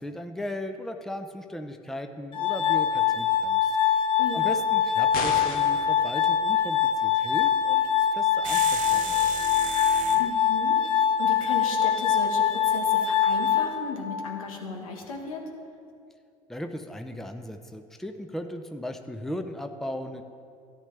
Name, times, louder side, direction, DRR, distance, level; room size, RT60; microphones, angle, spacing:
voice 1, 0.0-4.0 4.3-7.8 8.1-9.3 16.5-20.2, left 1 dB, ahead, 6 dB, 0.6 m, -37 dB
Glass, 2.3-14.3, left 8 dB, 30° left, 0.9 m, -24 dB
voice 2, 4.2-4.6 10.2-15.4, left 4 dB, 85° left, 3 dB, 1.3 m, -36 dB
sound 1, 5.1-5.9, left 5 dB, 60° left, 1.1 m, -32 dB
sound 2, 8.4-10.3, right 11 dB, 50° right, 0.5 m, -35 dB
13.0 x 10.0 x 3.3 m, 2.4 s
hypercardioid pair, 75°, 17 cm